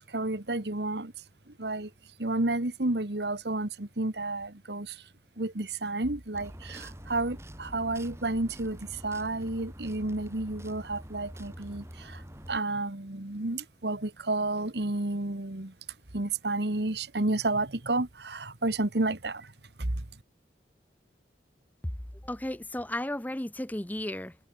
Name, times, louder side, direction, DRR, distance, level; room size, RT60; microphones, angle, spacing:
voice 1, 0.1-1.1 1.6-1.9 2.2-5.0 5.4-12.2 12.5-15.7 16.1-19.5 19.8-20.0, right 2 dB, 65° right, 1.8 m, -31 dB
sound 1, 6.3-12.6, equal, 15° right, 6.5 m, -45 dB
voice 2, 22.2-24.4, left 1 dB, 10° left, 0.6 m, -34 dB
head